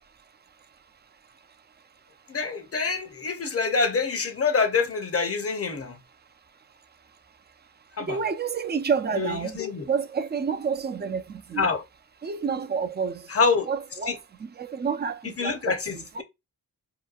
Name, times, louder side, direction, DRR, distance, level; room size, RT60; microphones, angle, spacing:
voice 1, 2.3-6.0 8.0-8.2 9.1-9.9 11.6-11.8 13.3-13.7 14.1-14.2 15.4-16.2, left 5 dB, 35° left, 0.7 m, -26 dB
voice 2, 8.1-11.7 12.2-13.2 13.7-16.2, right 6 dB, 25° right, 0.4 m, -29 dB
2.9 x 2.2 x 2.4 m
cardioid pair, 45°, 41 cm